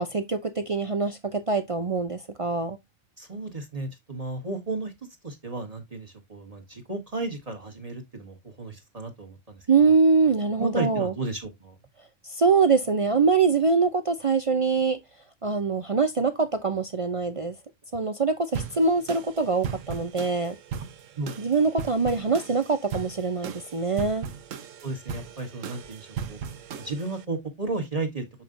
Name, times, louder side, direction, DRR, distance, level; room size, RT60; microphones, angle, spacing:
voice 1, 0.0-2.8 9.7-11.1 12.2-15.0 15.4-17.6 17.9-20.6 21.4-24.3, right 4 dB, 60° right, 0.3 m, -23 dB
voice 2, 3.2-4.9 5.2-9.7 10.6-11.7 21.2-21.4 24.8-26.4 26.8-28.3, right 3 dB, 30° right, 1.4 m, -33 dB
sound 1, 18.5-27.2, right 7 dB, 75° right, 1.1 m, -38 dB
7.1 x 5.7 x 2.5 m
omnidirectional pair, 1.4 m